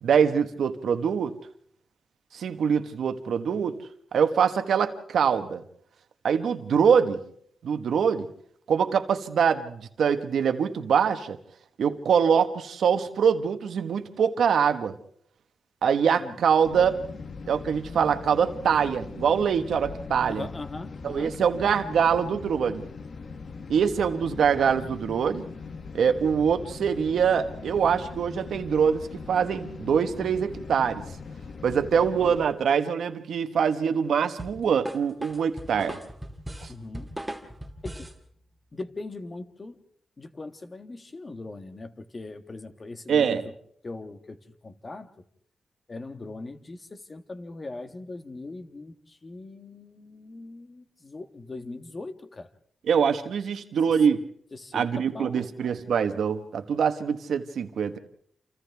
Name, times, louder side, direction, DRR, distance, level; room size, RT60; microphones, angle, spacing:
voice 1, 0.0-1.4 2.3-3.8 4.1-5.6 6.2-7.2 7.6-8.3 8.7-11.4 11.8-15.0 15.8-17.0 17.5-20.5 21.0-22.8 23.7-25.4 25.9-31.0 31.6-36.0 36.6-36.7 43.1-43.4 52.9-54.2 54.7-58.0, right 7 dB, 85° right, 8 dB, 1.4 m, -24 dB
sound 1, 16.6-32.5, left 4 dB, 55° left, 1.3 m, -40 dB
voice 2, 20.3-21.4 36.7-37.2 37.8-38.1 38.7-39.8 40.2-43.5 43.8-45.1 45.9-52.5 53.9-54.0 54.5-55.5, left 2 dB, 35° left, 8 dB, 1.4 m, -40 dB
sound 2, 34.4-38.2, right 1 dB, 5° right, 2.3 m, -38 dB
28.5 x 27.5 x 3.5 m, 0.63 s
wide cardioid pair, 105°, 0 cm